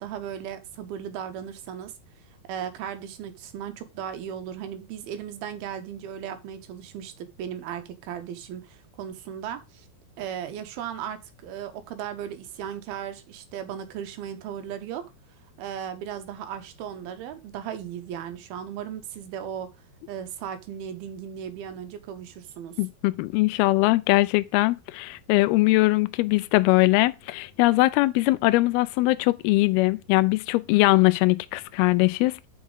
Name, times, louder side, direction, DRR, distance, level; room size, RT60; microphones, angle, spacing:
voice 1, 0.0-1.9 2.5-9.9 10.2-15.0 15.6-19.7 20.1-22.8, right 9 dB, 75° right, 2.5 m, -36 dB
voice 2, 22.8-32.5, left 20 dB, 85° left, 2.2 m, -21 dB
8.2 x 6.2 x 3.9 m
omnidirectional pair, 5.0 m